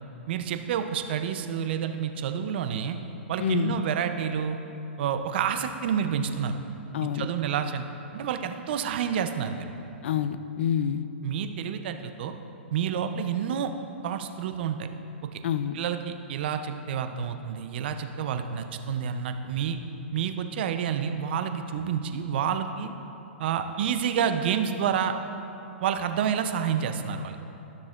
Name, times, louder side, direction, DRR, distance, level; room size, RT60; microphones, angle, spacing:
voice 1, 0.3-3.0 3.3-4.6 5.0-6.6 7.1-7.8 8.1-9.6 11.2-12.3 12.7-13.7 14.0-14.9 15.7-19.8 20.1-22.9 23.4-25.1 25.8-27.4, right 8 dB, 60° right, 7 dB, 0.6 m, -29 dB
voice 2, 3.4-3.8 6.9-7.3 10.0-11.1 15.4-15.8, left 9 dB, 70° left, 12 dB, 0.4 m, -27 dB
13.0 x 6.3 x 2.5 m, 2.9 s
hypercardioid pair, 130°, 6 cm